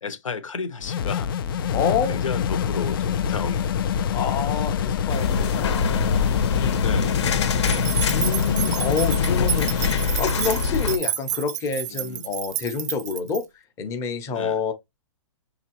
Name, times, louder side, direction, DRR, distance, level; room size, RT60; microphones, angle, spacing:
voice 1, 0.0-1.3 1.5-3.9 4.7-4.9 6.7-7.2 7.6-8.1 10.8-10.9 11.9-12.3 14.3-14.6, left 5 dB, 90° left, 1.0 m, -34 dB
sound 1, 0.8-10.2, left 8 dB, 45° left, 0.4 m, -26 dB
voice 2, 1.7-2.2 4.1-6.8 8.1-13.4 13.8-14.7, left 5 dB, 15° left, 0.7 m, -28 dB
sound 2, 5.1-11.0, left 5 dB, 60° left, 0.9 m, -24 dB
sound 3, 7.6-13.4, right 11 dB, 30° right, 0.4 m, -31 dB
6.4 x 2.8 x 2.9 m
hypercardioid pair, 155°, 16 cm